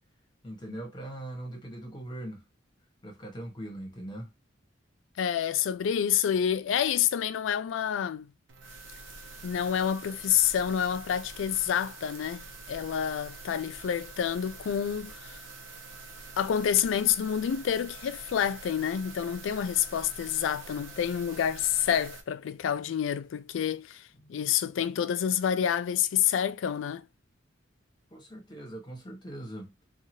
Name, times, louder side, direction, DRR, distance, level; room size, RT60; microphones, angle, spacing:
voice 1, 0.4-2.4 3.0-4.3 24.1-24.4 28.1-29.7, right 1 dB, 25° left, 1.1 m, -41 dB
voice 2, 5.2-8.3 9.4-15.4 16.4-27.0, left 9 dB, 75° left, 0.3 m, -28 dB
sound 1, 8.5-22.2, right 3 dB, 85° right, 0.7 m, -46 dB
2.7 x 2.4 x 2.8 m
head